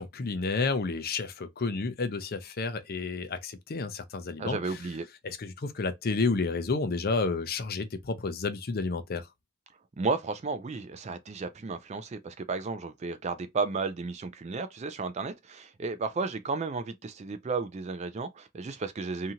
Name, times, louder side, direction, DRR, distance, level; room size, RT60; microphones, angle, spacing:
voice 1, 0.0-4.9 5.2-9.3, left 4 dB, 45° left, 0.5 m, -31 dB
voice 2, 4.4-5.1 10.0-19.3, right 4 dB, 30° right, 0.3 m, -33 dB
2.8 x 2.5 x 2.7 m
head